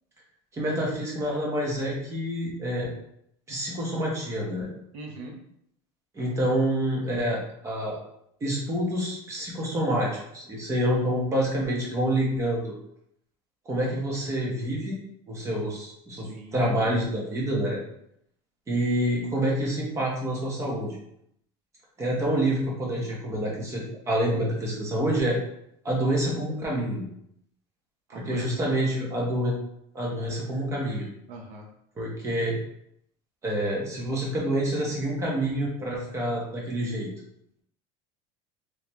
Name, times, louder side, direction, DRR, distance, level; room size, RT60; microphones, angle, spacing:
voice 1, 0.5-2.9 3.5-4.7 6.1-8.0 8.4-12.7 13.6-15.0 15.3-17.8 18.7-21.0 22.0-25.4 25.8-27.0 28.1-29.5 29.9-31.1 32.0-32.6 33.4-37.1, right 1 dB, 20° right, -2 dB, 1.2 m, -27 dB
voice 2, 4.9-5.3 16.1-16.7 28.1-29.2 31.3-31.7, right 2 dB, 55° right, 1 dB, 1.0 m, -42 dB
3.9 x 3.3 x 2.9 m, 0.74 s
cardioid pair, 150°, 14 cm